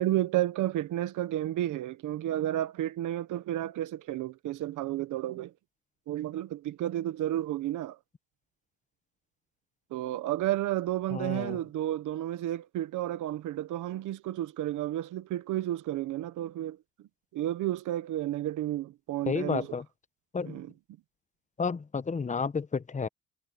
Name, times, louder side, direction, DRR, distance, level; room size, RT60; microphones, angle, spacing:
voice 1, 0.0-5.5 6.1-8.0 9.9-16.8 17.3-19.7 20.5-20.7, right 13 dB, 85° right, 1.2 m, -31 dB
voice 2, 11.1-11.6 19.3-19.9 20.3-20.6 21.6-23.1, left 5 dB, 25° left, 0.9 m, -31 dB
cardioid pair, 90°, 30 cm